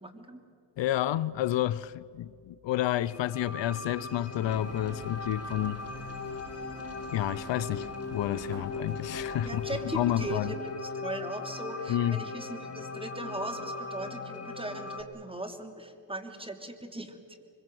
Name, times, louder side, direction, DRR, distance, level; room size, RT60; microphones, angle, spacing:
voice 1, 0.0-0.4 9.4-17.4, right 1 dB, 10° right, 2.8 m, -39 dB
voice 2, 0.8-5.8 7.1-9.6 9.9-10.5 11.9-12.2, left 12 dB, 75° left, 0.7 m, -30 dB
sound 1, 3.0-15.0, left 3 dB, 35° left, 2.9 m, -39 dB
sound 2, 4.4-10.3, right 5 dB, 60° right, 2.5 m, -48 dB
24.5 x 22.0 x 7.8 m
cardioid pair, 80°, 44 cm